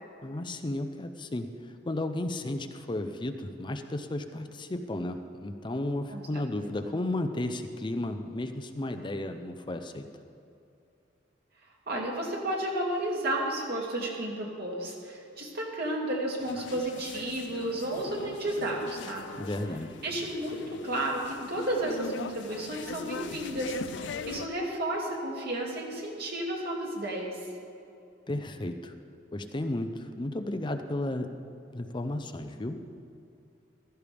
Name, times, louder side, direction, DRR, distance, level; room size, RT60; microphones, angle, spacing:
voice 1, 0.2-10.1 19.4-19.9 28.3-28.9 29.3-31.3 31.7-32.8, left 1 dB, 25° left, 7 dB, 0.6 m, -33 dB
voice 2, 11.9-19.3 20.0-27.4, right 1 dB, 60° right, -2 dB, 2.5 m, -32 dB
sound 1, 16.4-24.5, left 5 dB, 75° left, 0.4 m, -41 dB
15.5 x 13.5 x 3.5 m, 2.7 s
head